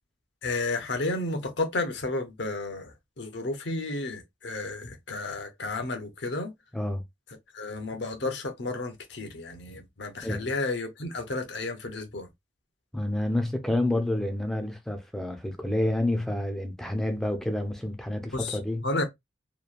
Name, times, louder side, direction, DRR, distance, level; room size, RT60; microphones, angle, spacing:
voice 1, 0.4-2.9 3.2-6.5 7.5-12.3 18.3-18.6 18.8-19.0, left 2 dB, 65° left, 0.7 m, -32 dB
voice 2, 10.2-10.5 12.9-18.9, left 1 dB, ahead, 0.4 m, -29 dB
2.9 x 2.2 x 2.4 m
head